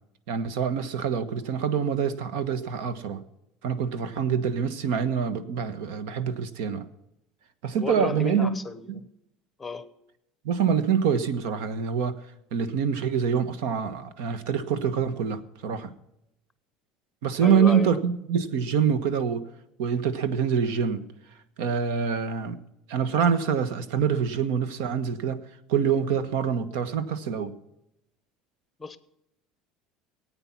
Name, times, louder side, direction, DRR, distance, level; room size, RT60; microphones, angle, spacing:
voice 1, 0.3-3.2 3.6-6.9 7.6-8.5 8.9-9.0 10.4-12.1 12.5-15.9 17.2-19.4 19.8-21.0 21.6-22.6 22.9-25.4 25.7-27.5, right 7 dB, 75° right, 13 dB, 1.2 m, -25 dB
voice 2, 7.8-9.1 9.6-9.9 17.4-18.0 28.8-29.0, left 4 dB, 10° left, 13 dB, 0.8 m, -33 dB
18.0 x 8.8 x 5.9 m, 0.86 s
cardioid pair, 165°, 0 cm